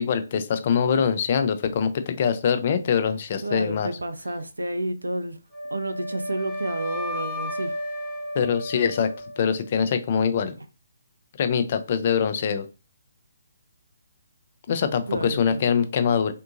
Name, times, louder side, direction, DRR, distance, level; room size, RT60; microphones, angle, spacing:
voice 1, 0.0-3.9 8.3-9.1 9.4-10.5 11.4-12.7 14.7-16.3, left 7 dB, 40° left, 0.5 m, -23 dB
voice 2, 3.4-5.4 5.7-7.7 15.1-15.6, right 1 dB, 80° right, 0.5 m, -30 dB
Wind instrument woodwind instrument, 5.5-9.6, equal, ahead, 1.1 m, -33 dB
3.6 x 2.7 x 2.5 m
figure-of-eight pair, 140°, 0 cm